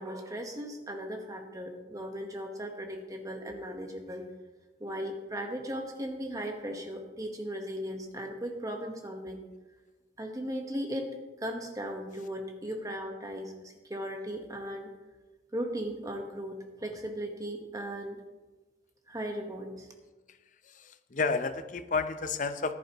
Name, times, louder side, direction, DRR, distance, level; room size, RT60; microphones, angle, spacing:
voice 1, 0.0-4.3 4.8-9.4 10.2-11.1 11.4-14.9 15.5-18.2 19.1-19.9, equal, 20° right, 3 dB, 1.2 m, -37 dB
voice 2, 20.7-22.7, left 4 dB, 45° left, 10 dB, 0.6 m, -31 dB
14.5 x 11.0 x 3.0 m, 1.2 s
head